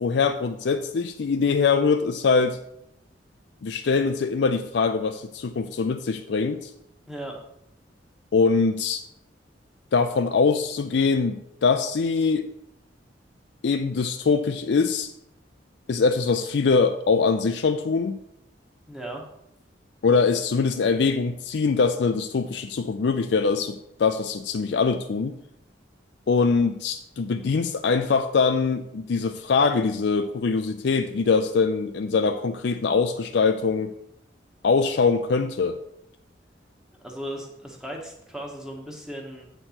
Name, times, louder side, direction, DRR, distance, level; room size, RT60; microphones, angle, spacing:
voice 1, 0.0-2.6 3.6-6.7 8.3-9.0 9.9-12.5 13.6-15.1 15.9-18.2 20.0-25.4 26.3-33.9 34.6-35.8, left 4 dB, 65° left, 8 dB, 0.4 m, -23 dB
voice 2, 7.1-7.4 18.9-19.2 37.0-39.4, right 1 dB, 5° right, 0 dB, 1.2 m, -36 dB
8.0 x 4.4 x 5.8 m, 0.79 s
head